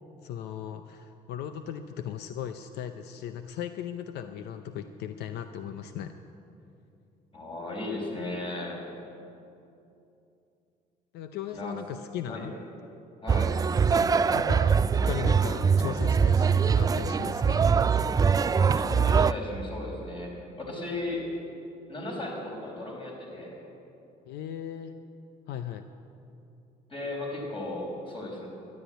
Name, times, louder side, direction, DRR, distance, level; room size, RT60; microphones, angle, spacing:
voice 1, 0.2-6.1 11.1-12.5 14.3-17.7 24.3-24.9 25.5-25.9, left 9 dB, 80° left, 8 dB, 0.7 m, -37 dB
voice 2, 7.3-8.8 11.5-11.7 12.3-12.5 13.2-13.5 18.7-20.3 20.6-21.2 21.9-23.6 26.9-28.5, left 2 dB, 30° left, -1 dB, 5.0 m, -36 dB
sound 1, 13.3-19.3, right 6 dB, 20° right, 0.3 m, -23 dB
12.5 x 12.0 x 9.1 m, 2.8 s
cardioid pair, 110°, 17 cm